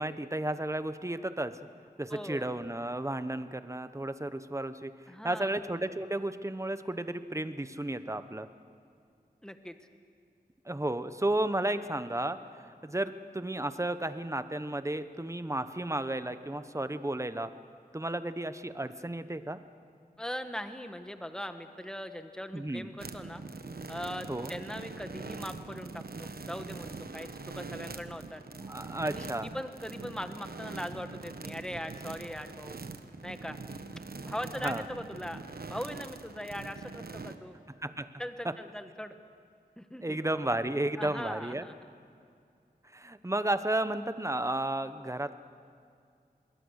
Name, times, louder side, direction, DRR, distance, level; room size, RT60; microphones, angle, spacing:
voice 1, 0.0-1.6 2.0-4.9 5.2-8.5 10.7-17.5 17.9-19.6 22.5-22.9 24.3-24.5 28.7-29.5 34.6-34.8 37.8-38.1 38.4-38.5 40.0-41.7 42.9-45.3, right 1 dB, 20° right, 11 dB, 1.0 m, -33 dB
voice 2, 2.1-2.5 5.1-5.5 9.4-9.8 20.2-23.4 23.9-28.4 29.0-32.8 33.2-33.6 34.2-37.5 38.2-39.1 39.8-40.2 41.0-41.7, equal, 5° left, 8 dB, 1.4 m, -40 dB
sound 1, 23.0-37.3, right 3 dB, 70° right, 1.1 m, -43 dB
26.5 x 21.5 x 6.5 m, 2.4 s
wide cardioid pair, 70°, 16 cm